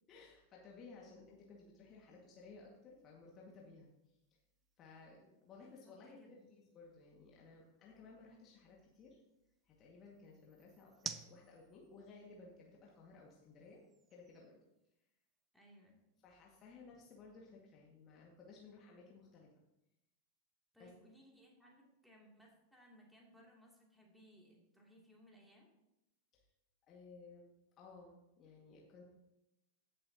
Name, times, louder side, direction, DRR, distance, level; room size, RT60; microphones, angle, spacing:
voice 1, 0.1-4.2 4.8-9.2 9.7-13.8 14.1-14.6 16.2-19.5 20.8-20.9 26.3-26.4 26.9-27.5 27.8-29.0, left 4 dB, 30° left, -2 dB, 1.9 m, -58 dB
sound 1, 1.2-15.5, right 7 dB, 25° right, 0.7 m, -57 dB
voice 2, 5.6-6.5 15.5-16.0 20.7-25.7, equal, ahead, -2 dB, 2.7 m, -64 dB
16.5 x 7.6 x 2.9 m, 0.90 s
figure-of-eight pair, 90°, 0 cm